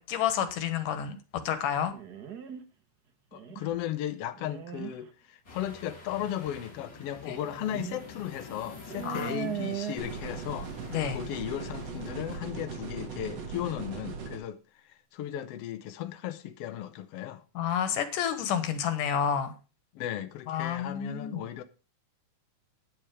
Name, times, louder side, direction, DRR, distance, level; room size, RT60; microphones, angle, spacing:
voice 1, 0.0-1.9 7.2-7.4 9.0-9.7 10.9-11.2 17.5-19.5 20.5-21.4, left 8 dB, 90° left, 2.9 m, -30 dB
sound 1, 1.9-2.6 3.3-3.8 4.4-4.9 6.2-6.3 7.4-8.0 8.3-8.4 8.9-9.9, right 10 dB, 75° right, 0.9 m, -38 dB
voice 2, 3.3-17.4 19.9-21.6, left 11 dB, 65° left, 1.6 m, -36 dB
sound 2, 5.4-12.4, left 3 dB, 35° left, 3.2 m, -49 dB
sound 3, 10.0-14.4, right 5 dB, 55° right, 2.7 m, -39 dB
9.8 x 7.8 x 5.0 m
omnidirectional pair, 3.6 m